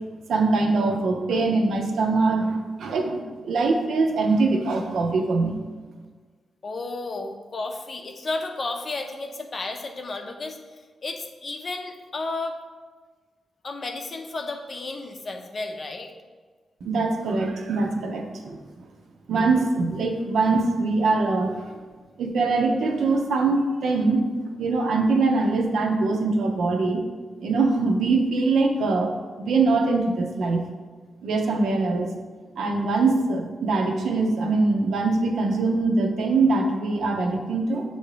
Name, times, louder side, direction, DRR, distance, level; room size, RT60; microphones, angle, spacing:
voice 1, 0.3-5.6 16.8-18.6 19.3-21.5 22.2-24.3 24.6-27.0 27.4-30.6 31.2-32.1 32.6-37.8, right 3 dB, 80° right, 3 dB, 0.7 m, -23 dB
voice 2, 6.6-12.6 13.6-16.1, left 3 dB, 35° left, 5 dB, 0.5 m, -33 dB
7.6 x 2.7 x 4.9 m, 1.4 s
wide cardioid pair, 175°, 0 cm